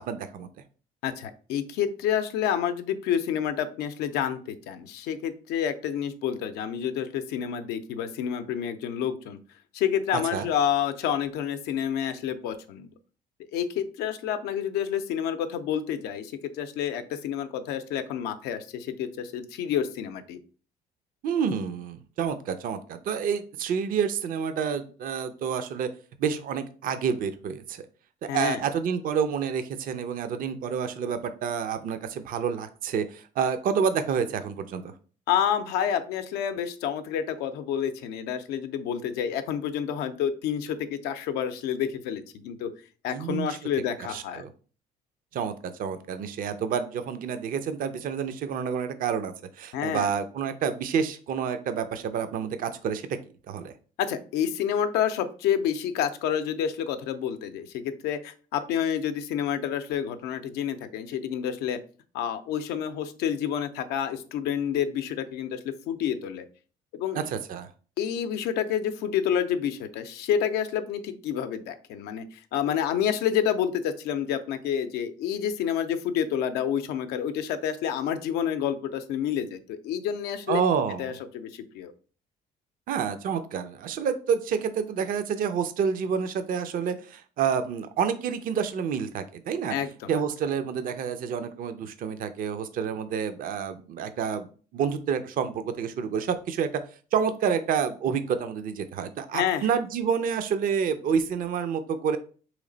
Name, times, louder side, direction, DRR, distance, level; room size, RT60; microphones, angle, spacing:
voice 1, 0.1-0.5 10.3-10.5 21.2-25.9 26.2-27.8 28.2-34.9 43.1-43.6 44.1-44.5 45.3-53.2 53.5-53.7 67.1-67.7 80.5-81.1 82.9-89.8 90.1-96.8 97.1-102.2, right 7 dB, 60° right, 10 dB, 0.5 m, -28 dB
voice 2, 1.0-9.4 9.7-12.9 13.5-20.4 28.3-28.6 35.3-42.7 43.0-44.4 49.7-50.1 54.0-61.8 62.1-66.4 66.9-67.2 68.0-80.6 81.0-81.9 89.7-90.2 99.3-99.7, left 9 dB, 85° left, 9 dB, 0.5 m, -29 dB
3.2 x 3.1 x 3.8 m, 0.39 s
cardioid pair, 85°, 16 cm